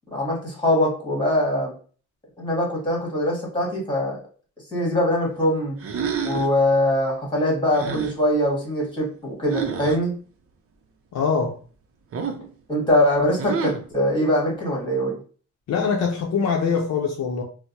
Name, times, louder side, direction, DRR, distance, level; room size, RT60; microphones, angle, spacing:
voice 1, 0.1-1.7 2.4-4.2 4.7-5.8 6.2-10.1 12.7-15.2, left 1 dB, 15° left, 1.4 m, -22 dB
sound 1, 5.8-6.6 7.7-8.2 9.5-10.0 12.1-12.5 13.4-13.9, right 6 dB, 50° right, 0.5 m, -28 dB
voice 2, 11.1-11.6 15.7-17.4, left 5 dB, 65° left, 0.6 m, -23 dB
4.4 x 2.0 x 2.7 m
wide cardioid pair, 155°, 29 cm